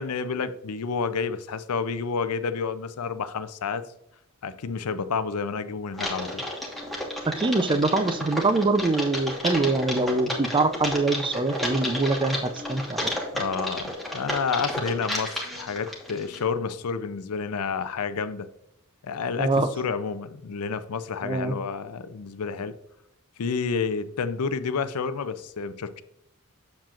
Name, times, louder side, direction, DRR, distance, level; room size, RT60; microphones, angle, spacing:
voice 1, 0.0-3.9 4.4-6.5 13.3-18.5 19.0-22.7 23.4-26.0, left 5 dB, 85° left, 13 dB, 0.5 m, -30 dB
Typing, 5.9-16.4, left 1 dB, ahead, 1.3 m, -32 dB
voice 2, 7.3-13.1 19.4-19.7 21.2-21.6, right 3 dB, 20° right, 11 dB, 0.4 m, -24 dB
7.4 x 7.3 x 2.4 m, 0.80 s
head